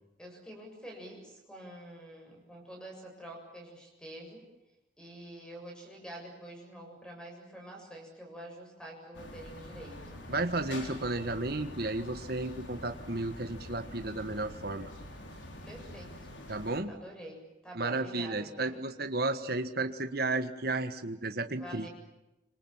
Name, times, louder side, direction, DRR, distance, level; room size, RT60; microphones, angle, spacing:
voice 1, 0.2-4.5 5.0-10.3 15.6-16.3 16.9-18.8 21.6-21.9, right 1 dB, 5° left, 1 dB, 7.5 m, -47 dB
sound 1, 9.1-16.8, left 1 dB, 70° left, 4.5 m, -46 dB
voice 2, 10.3-14.9 16.5-16.9 17.7-21.9, right 2 dB, 55° right, 8 dB, 1.6 m, -33 dB
26.5 x 26.5 x 7.4 m, 0.98 s
head